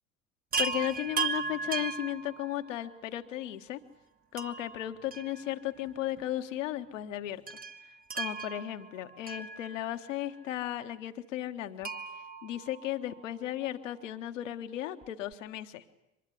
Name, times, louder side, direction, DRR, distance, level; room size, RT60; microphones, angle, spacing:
Chime, 0.5-3.0 4.4-5.9 6.2-6.3 7.5-10.2 11.8-13.4 15.0-15.1 15.3-15.4, right 4 dB, 20° right, 1.2 m, -37 dB
voice 1, 0.6-3.8 4.3-7.4 8.1-15.8, left 13 dB, 65° left, 8 dB, 1.5 m, -35 dB
24.5 x 20.5 x 8.4 m, 0.91 s
figure-of-eight pair, 65°, 41 cm